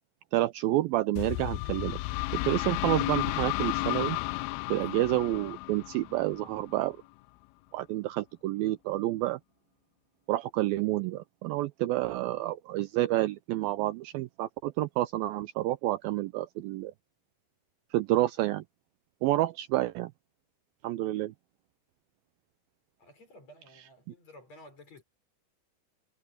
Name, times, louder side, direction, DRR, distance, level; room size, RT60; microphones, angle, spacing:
voice 1, 0.3-2.0 2.3-4.2 4.7-7.0 7.7-9.4 10.3-16.9 17.9-18.6 19.2-20.1 20.8-21.3, right 16 dB, 80° right, 2.2 m, -29 dB
sound 1, 1.2-6.8, left 22 dB, 80° left, 2.2 m, -33 dB
voice 2, 23.0-25.0, left 1 dB, 40° left, 7.5 m, -53 dB
omnidirectional pair, 4.6 m